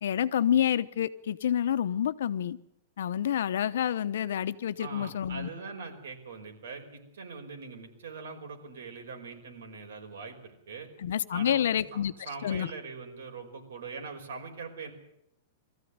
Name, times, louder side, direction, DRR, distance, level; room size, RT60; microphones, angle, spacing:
voice 1, 0.0-2.6 3.0-5.5 11.0-12.1 12.4-12.7, left 10 dB, 65° left, 1.0 m, -28 dB
voice 2, 4.8-10.9 11.3-14.9, right 4 dB, 75° right, 5.4 m, -42 dB
22.0 x 14.5 x 9.6 m
supercardioid pair, 180°, 0 cm